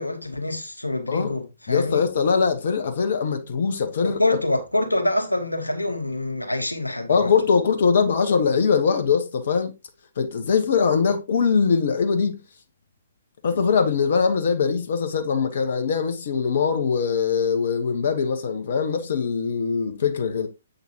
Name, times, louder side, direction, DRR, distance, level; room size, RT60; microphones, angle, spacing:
voice 1, 0.0-2.1 4.0-7.3, left 1 dB, 85° left, 1.3 m, -26 dB
voice 2, 1.7-4.2 7.1-9.7 10.2-12.4 13.4-20.5, left 5 dB, 50° left, 1.2 m, -22 dB
7.6 x 6.6 x 2.9 m
figure-of-eight pair, 125°, 0 cm